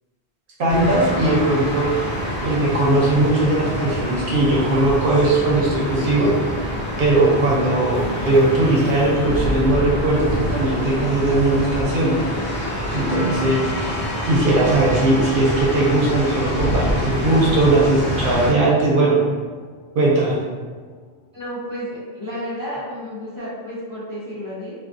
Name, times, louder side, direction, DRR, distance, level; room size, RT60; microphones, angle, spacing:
voice 1, 0.6-2.0 2.4-6.3 7.0-12.2 12.9-14.0 14.2-19.2 19.9-20.4, right 2 dB, 65° right, -4 dB, 0.7 m, -19 dB
sound 1, 0.7-18.5, equal, 50° left, 1.2 m, -26 dB
Piano, 13.1-20.5, left 1 dB, 80° left, 0.8 m, -35 dB
voice 2, 21.3-24.7, equal, 30° left, -10 dB, 0.4 m, -31 dB
2.4 x 2.4 x 2.5 m, 1.5 s
omnidirectional pair, 1.1 m